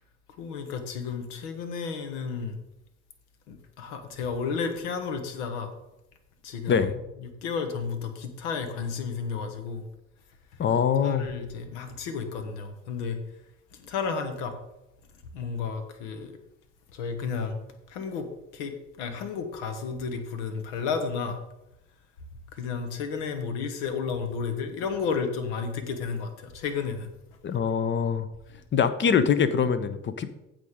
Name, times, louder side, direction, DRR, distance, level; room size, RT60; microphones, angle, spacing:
voice 1, 0.4-2.6 3.5-5.7 6.4-6.9 7.2-9.8 11.0-13.2 13.8-14.6 15.3-16.3 16.9-17.6 17.9-21.4 22.5-27.1, left 5 dB, 60° left, 8 dB, 1.4 m, -32 dB
voice 2, 6.7-7.0 10.6-11.3 27.4-28.3 28.7-30.3, left 7 dB, 30° left, 13 dB, 0.8 m, -24 dB
15.0 x 5.1 x 3.7 m, 0.91 s
figure-of-eight pair, 60°, 39 cm